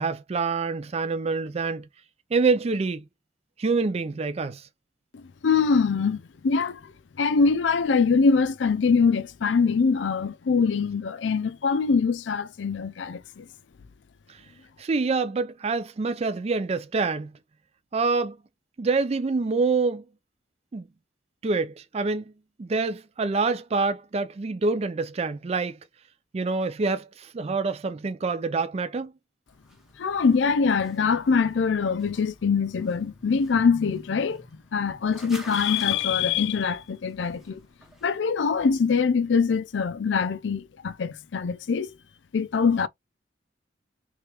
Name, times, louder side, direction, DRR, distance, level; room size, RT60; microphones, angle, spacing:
voice 1, 0.0-1.8 2.3-3.0 3.6-4.7 14.3-14.4 14.8-17.3 17.9-18.4 18.8-20.0 20.7-20.9 21.4-22.2 22.6-25.8 26.3-29.1, right 4 dB, 35° right, 0.4 m, -26 dB
voice 2, 5.1-6.9 7.2-13.5 30.0-34.4 34.7-37.6 38.0-42.0 42.3-42.9, left 5 dB, 80° left, 0.5 m, -23 dB
sound 1, 29.5-38.2, equal, ahead, 1.0 m, -48 dB
3.4 x 3.2 x 2.9 m
head